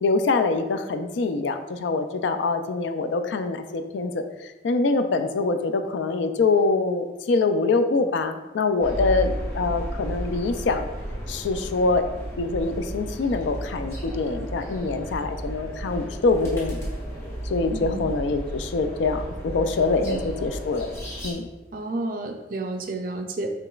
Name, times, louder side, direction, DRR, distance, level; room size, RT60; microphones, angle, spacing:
voice 1, 0.0-10.9 11.3-12.0 12.4-16.8 17.5-20.9 21.2-21.4, left 3 dB, 80° left, 8 dB, 0.4 m, -24 dB
sound 1, 8.8-21.3, right 1 dB, 15° left, 0.8 m, -33 dB
voice 2, 17.7-18.1 20.0-20.2 21.7-23.5, right 2 dB, 50° right, 5 dB, 0.4 m, -31 dB
4.9 x 3.3 x 2.3 m, 1.1 s
head